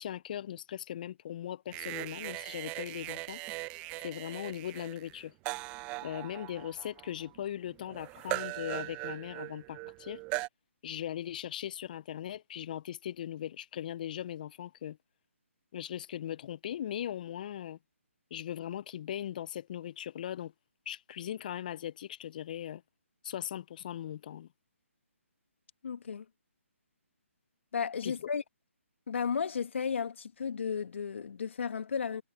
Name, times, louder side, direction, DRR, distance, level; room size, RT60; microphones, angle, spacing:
voice 1, 0.0-3.4 4.0-5.3 6.0-10.2 10.8-15.0 15.7-17.8 18.3-20.5 20.9-22.8 23.2-24.5 28.0-28.1, left 11 dB, 35° left, 0.5 m, -39 dB
sound 1, 1.7-10.5, right 24 dB, 15° right, 0.4 m, -40 dB
voice 2, 25.8-26.3 27.7-28.4 29.1-32.2, left 6 dB, 60° left, 1.9 m, -34 dB
hypercardioid pair, 150°, 7 cm